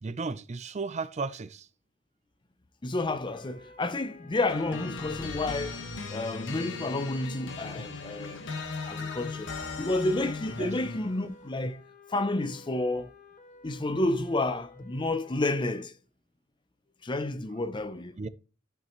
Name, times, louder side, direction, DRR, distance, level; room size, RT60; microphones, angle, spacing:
voice 1, 0.0-1.7 10.6-10.7 18.2-18.3, right 4 dB, 35° right, 0.5 m, -34 dB
voice 2, 2.8-5.8 6.1-8.4 8.9-9.5 9.8-11.8 12.1-13.1 13.6-15.9 17.0-18.2, left 2 dB, 25° left, 0.5 m, -30 dB
sound 1, 3.3-15.8, left 3 dB, 40° left, 1.2 m, -54 dB
sound 2, 4.5-11.2, left 4 dB, 70° left, 1.3 m, -38 dB
13.5 x 5.7 x 3.1 m
head